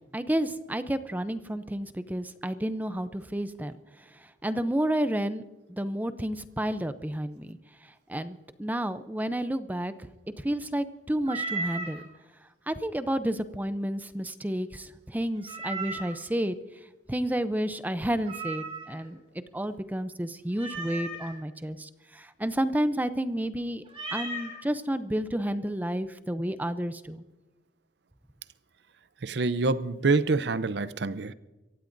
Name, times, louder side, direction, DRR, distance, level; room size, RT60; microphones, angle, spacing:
voice 1, 0.1-5.4 5.7-9.9 10.4-12.0 12.7-16.6 17.1-23.8 24.1-27.2, right 1 dB, 10° right, 0.5 m, -31 dB
Meow, 11.3-12.0 15.5-16.2 18.3-19.1 20.5-21.3 23.9-24.5, right 3 dB, 30° right, 5.7 m, -35 dB
voice 2, 29.2-31.3, right 3 dB, 60° right, 0.6 m, -26 dB
26.0 x 15.5 x 2.6 m
head